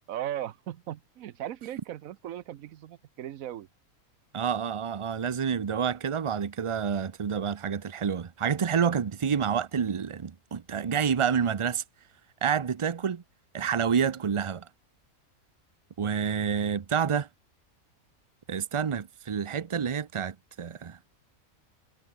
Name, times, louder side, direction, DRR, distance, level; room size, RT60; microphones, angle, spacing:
voice 1, 0.1-3.7, right 12 dB, 75° right, 1.1 m, -37 dB
voice 2, 4.3-11.8 12.4-13.2 13.5-14.7 16.0-17.3 18.5-21.0, right 7 dB, 50° right, 0.3 m, -28 dB
omnidirectional pair, 1.5 m